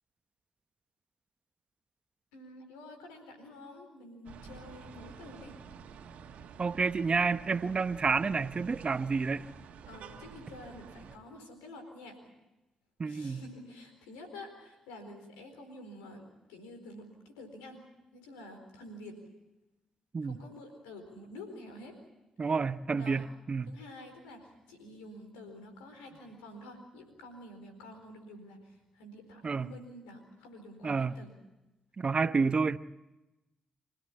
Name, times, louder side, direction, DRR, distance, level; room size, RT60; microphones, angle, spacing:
voice 1, 2.3-5.6 9.9-12.2 13.0-17.8 18.1-19.2 20.2-21.9 22.4-22.5 23.0-23.2 23.7-31.3, left 1 dB, 90° left, 4.3 m, -49 dB
sound 1, 4.2-11.2, right 7 dB, 75° right, 1.6 m, -49 dB
voice 2, 6.6-9.5 13.0-13.4 20.1-20.4 22.4-23.7 29.4-29.7 30.8-31.1 32.0-32.8, right 4 dB, 45° right, 0.9 m, -29 dB
26.5 x 16.5 x 8.8 m
hypercardioid pair, 40°, 2 cm